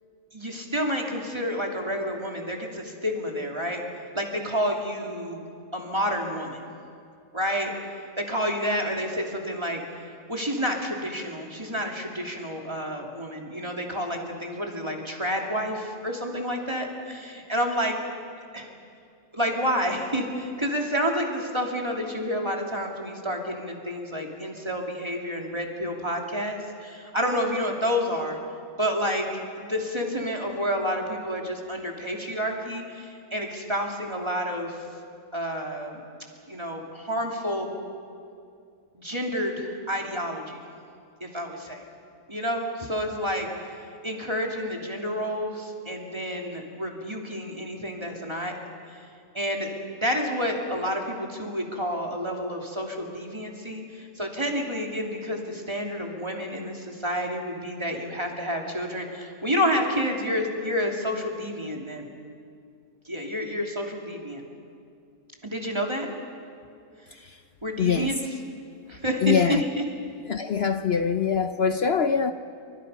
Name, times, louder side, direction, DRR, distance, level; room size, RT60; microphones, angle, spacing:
voice 1, 0.3-3.8 4.1-5.4 5.7-6.7 7.3-7.7 8.2-9.8 10.3-18.0 18.5-18.7 19.3-28.4 28.8-29.3 29.6-34.8 35.3-36.0 36.5-37.7 38.9-40.6 41.2-41.8 42.3-43.5 44.0-48.6 48.9-49.0 49.3-62.1 63.0-64.4 65.4-66.1 67.6-68.2 68.9-69.6, equal, 20° right, 2.8 m, -29 dB
voice 2, 67.8-68.1 69.2-69.7 70.3-72.3, left 6 dB, 55° left, 0.8 m, -24 dB
28.5 x 25.0 x 5.6 m
omnidirectional pair, 1.6 m